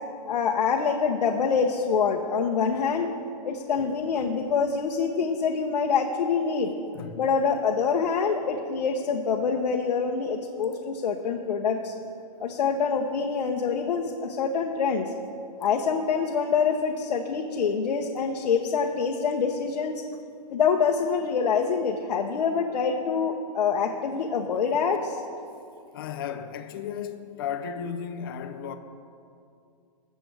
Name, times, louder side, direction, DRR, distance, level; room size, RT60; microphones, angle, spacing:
voice 1, 0.3-3.1 3.4-6.7 7.2-11.9 12.4-15.1 15.6-20.0 20.5-25.2, left 5 dB, 85° left, 1.0 m, -25 dB
voice 2, 6.9-7.3 25.9-28.8, left 7 dB, 35° left, 0.6 m, -34 dB
21.0 x 7.7 x 3.4 m
hypercardioid pair, 175°, 21 cm